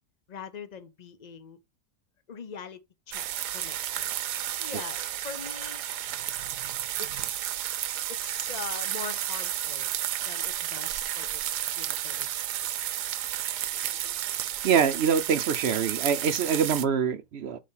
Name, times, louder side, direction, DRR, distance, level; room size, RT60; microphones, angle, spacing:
voice 1, 0.3-1.6 2.3-3.3 3.5-4.1 4.6-5.8 7.0-7.4 8.1-9.9 10.2-12.3 12.7-12.9, left 6 dB, 70° left, 0.4 m, -42 dB
sound 1, 3.1-16.9, right 12 dB, 90° right, 1.3 m, -32 dB
voice 2, 14.6-17.6, right 7 dB, 55° right, 0.7 m, -25 dB
8.2 x 3.4 x 5.6 m
omnidirectional pair, 1.7 m